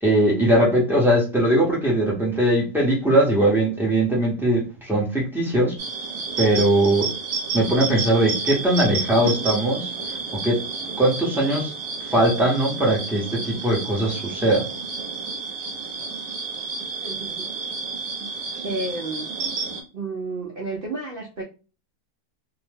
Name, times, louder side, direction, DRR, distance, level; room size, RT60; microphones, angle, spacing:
voice 1, 0.0-5.7 6.4-7.1 7.5-9.9 10.3-10.6 11.0-11.7 12.1-14.7, right 1 dB, ahead, -3 dB, 0.5 m, -20 dB
sound 1, 5.8-19.8, right 4 dB, 55° right, 0.9 m, -31 dB
voice 2, 17.0-17.5 18.6-19.3 19.9-21.4, right 2 dB, 75° right, -1 dB, 0.5 m, -31 dB
2.7 x 2.1 x 3.3 m, 0.33 s
omnidirectional pair, 1.7 m